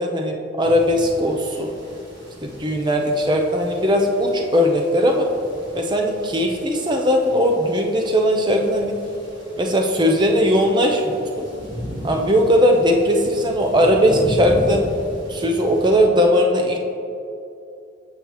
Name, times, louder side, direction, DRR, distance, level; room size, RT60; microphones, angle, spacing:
voice 1, 0.0-1.7 2.4-5.3 5.7-9.0 9.6-11.5 12.0-14.9 15.3-16.8, equal, 25° right, 2 dB, 0.6 m, -19 dB
sound 1, 0.6-16.0, equal, 65° right, 1.7 m, -36 dB
8.3 x 6.8 x 3.1 m, 2.6 s
head